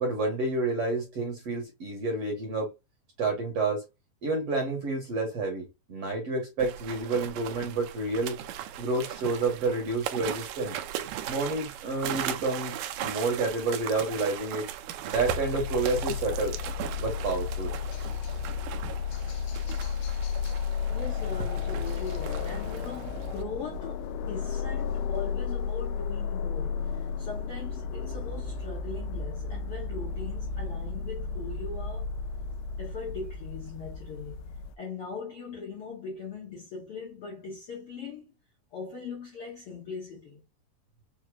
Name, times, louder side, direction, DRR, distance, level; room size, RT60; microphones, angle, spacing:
voice 1, 0.0-2.7 3.2-3.8 4.2-8.4 8.8-10.8 11.3-14.7 15.0-16.6 17.0-17.7, right 3 dB, 55° right, 1.8 m, -29 dB
sound 1, 6.6-23.4, right 11 dB, 80° right, 2.0 m, -38 dB
sound 2, 15.1-34.8, left 6 dB, 85° left, 2.5 m, -33 dB
voice 2, 20.9-32.1 32.8-38.3 38.7-40.4, left 5 dB, 60° left, 1.5 m, -40 dB
6.4 x 2.9 x 2.3 m
omnidirectional pair, 4.4 m